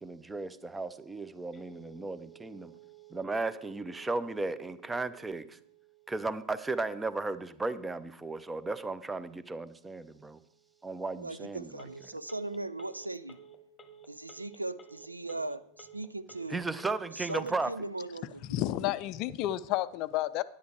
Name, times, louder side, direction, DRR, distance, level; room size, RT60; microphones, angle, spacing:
voice 1, 0.0-2.7 3.1-5.6 6.1-10.4 10.8-11.7 16.5-17.7, right 3 dB, 10° right, 0.6 m, -35 dB
Telephone, 1.5-17.5, right 7 dB, 15° left, 1.2 m, -56 dB
voice 2, 11.2-13.4 14.1-16.6 17.1-18.6, right 2 dB, 85° right, 0.5 m, -39 dB
voice 3, 18.5-20.4, left 14 dB, 40° left, 0.5 m, -31 dB
10.5 x 9.9 x 4.8 m
figure-of-eight pair, 90°, 0 cm